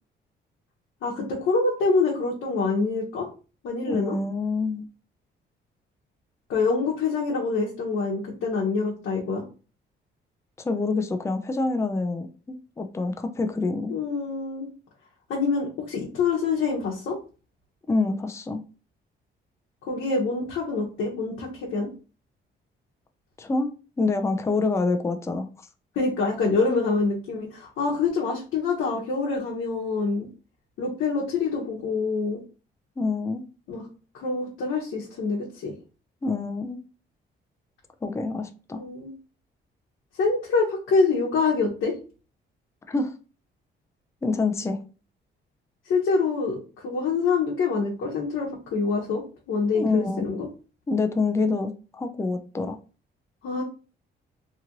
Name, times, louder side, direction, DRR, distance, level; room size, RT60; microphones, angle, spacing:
voice 1, 1.0-3.3 3.6-4.2 6.5-9.4 13.9-14.7 15.3-17.2 19.8-21.9 25.9-30.3 30.8-32.4 33.7-33.9 34.1-35.7 38.7-39.1 40.2-41.9 45.9-50.5 53.4-53.6, left 4 dB, 75° left, -3 dB, 0.9 m, -26 dB
voice 2, 3.9-4.9 10.6-12.3 12.8-14.0 17.9-18.6 23.4-23.7 24.0-25.5 33.0-33.4 36.2-36.8 38.0-38.8 42.9-43.1 44.2-44.8 49.7-50.2 50.9-52.8, left 3 dB, 15° left, 7 dB, 0.4 m, -26 dB
2.9 x 2.5 x 2.9 m, 0.35 s
cardioid pair, 90°, 20 cm